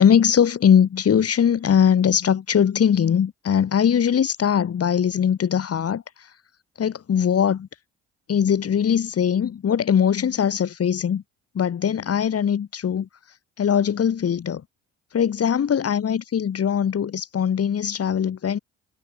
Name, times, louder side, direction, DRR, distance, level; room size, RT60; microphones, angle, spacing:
voice 1, 0.0-6.0 6.8-7.7 8.3-11.2 11.5-13.1 13.6-14.6 15.1-18.6, left 8 dB, 50° left, 4.2 m, -21 dB
supercardioid pair, 60°, 30 cm